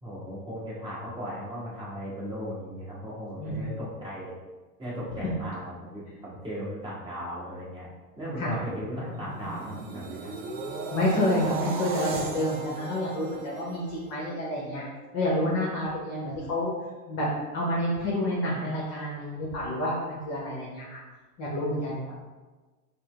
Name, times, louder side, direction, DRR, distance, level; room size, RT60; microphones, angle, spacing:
voice 1, 0.0-4.3 4.8-7.9 8.2-10.3, equal, 10° right, -7 dB, 1.1 m, -37 dB
sound 1, 8.2-14.4 14.9-15.1, right 4 dB, 35° right, 0.4 m, -37 dB
voice 2, 10.9-14.8 15.1-16.7 17.1-17.3 17.5-21.0 21.4-22.1, left 1 dB, 30° left, -4 dB, 0.8 m, -29 dB
4.4 x 2.1 x 3.2 m, 1.3 s
figure-of-eight pair, 95°, 48 cm